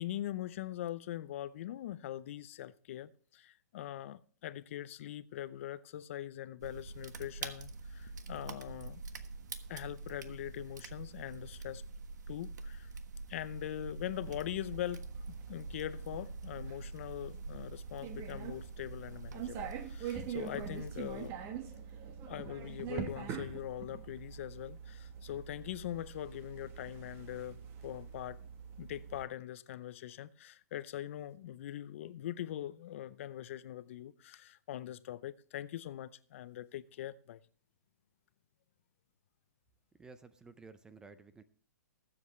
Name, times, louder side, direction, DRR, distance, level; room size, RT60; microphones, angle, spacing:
voice 1, 0.0-9.0 9.7-11.8 12.3-12.9 13.3-21.3 22.3-28.4 28.8-37.4, left 12 dB, 45° left, 0.6 m, -42 dB
sound 1, 6.6-21.3, right 3 dB, 75° right, 1.3 m, -46 dB
sound 2, 14.2-29.3, right 7 dB, 25° right, 1.2 m, -45 dB
voice 2, 39.9-41.4, right 4 dB, 5° right, 0.4 m, -54 dB
20.5 x 7.8 x 3.2 m
hypercardioid pair, 155°, 9 cm